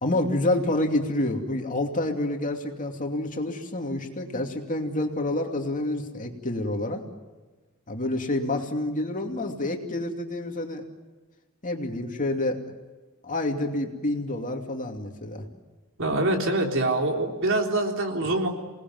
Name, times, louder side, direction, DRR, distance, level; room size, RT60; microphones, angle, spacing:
voice 1, 0.0-7.0 7.9-10.8 11.6-12.6 13.2-15.4, left 1 dB, 35° left, 3 dB, 2.6 m, -28 dB
voice 2, 16.0-18.5, right 2 dB, 60° right, 2 dB, 3.8 m, -24 dB
28.0 x 19.5 x 9.4 m, 1.3 s
head